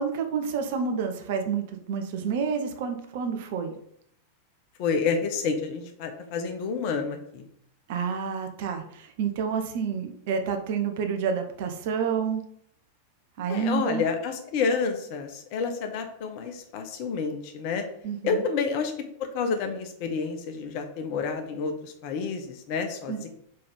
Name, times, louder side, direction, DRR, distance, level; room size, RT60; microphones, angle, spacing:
voice 1, 0.0-3.7 7.9-12.4 13.4-14.0 18.0-18.4 23.1-23.2, right 6 dB, 50° right, 6 dB, 1.0 m, -29 dB
voice 2, 4.8-7.4 13.5-17.8 18.2-18.9 19.2-23.3, left 5 dB, 45° left, 5 dB, 1.2 m, -29 dB
5.1 x 4.7 x 5.3 m, 0.67 s
figure-of-eight pair, 90°, 0 cm